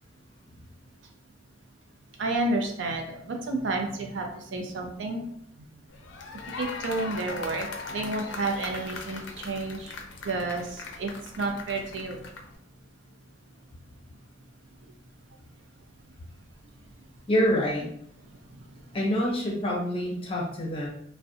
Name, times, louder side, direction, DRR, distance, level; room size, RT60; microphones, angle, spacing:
voice 1, 2.2-5.2 5.6-5.7 6.6-9.9 10.2-11.1 11.4-12.2, right 2 dB, 75° right, 2 dB, 0.5 m, -30 dB
sound 1, 5.9-12.6, left 3 dB, 75° left, 0.4 m, -40 dB
voice 2, 17.3-17.9 18.9-20.9, equal, 30° left, -3 dB, 0.6 m, -26 dB
2.4 x 2.1 x 2.6 m, 0.69 s
head